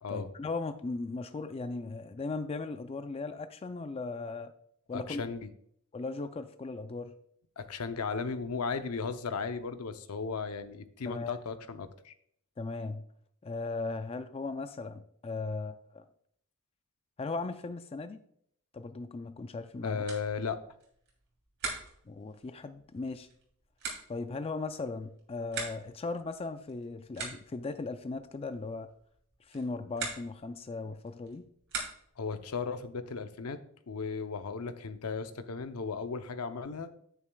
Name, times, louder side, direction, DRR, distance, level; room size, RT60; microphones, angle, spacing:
voice 1, 0.1-4.5 4.9-5.3 5.9-7.1 11.1-11.4 12.6-13.0 13.4-16.0 17.2-18.2 18.7-20.0 22.1-23.3 24.1-28.9 29.5-31.4, left 3 dB, 25° left, 9 dB, 0.4 m, -37 dB
voice 2, 4.9-5.5 7.6-12.1 19.8-20.6 32.2-33.6 33.9-36.9, left 5 dB, 75° left, 9 dB, 0.7 m, -36 dB
sound 1, 20.0-32.3, right 4 dB, 55° right, 3.1 m, -44 dB
9.8 x 8.9 x 2.3 m, 0.67 s
head